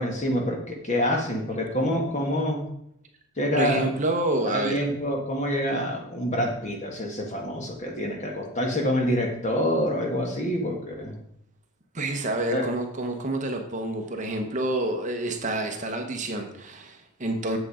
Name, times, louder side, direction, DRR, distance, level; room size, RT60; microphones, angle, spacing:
voice 1, 0.0-2.6 3.4-3.8 4.4-11.1 12.5-12.7, equal, 30° left, 1 dB, 1.7 m, -26 dB
voice 2, 3.6-4.9 11.9-17.6, right 1 dB, 35° right, 4 dB, 1.0 m, -28 dB
8.5 x 7.4 x 5.0 m, 0.74 s
head